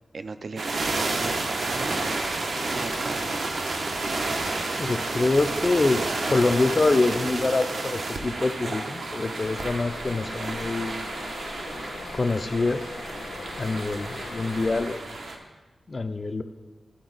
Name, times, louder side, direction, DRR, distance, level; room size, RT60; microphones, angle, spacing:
voice 1, 0.1-2.3 2.7-3.3, right 4 dB, 55° right, 10 dB, 0.4 m, -37 dB
sound 1, 0.6-15.4, right 2 dB, 75° right, 0.9 m, -31 dB
voice 2, 4.8-6.0 6.3-11.0 12.1-12.8 13.6-15.2 15.9-16.4, left 3 dB, 35° left, 9 dB, 0.4 m, -25 dB
sound 2, 9.4-14.8, left 3 dB, 75° left, 0.9 m, -39 dB
12.5 x 4.3 x 3.9 m, 1.2 s
wide cardioid pair, 130°, 0 cm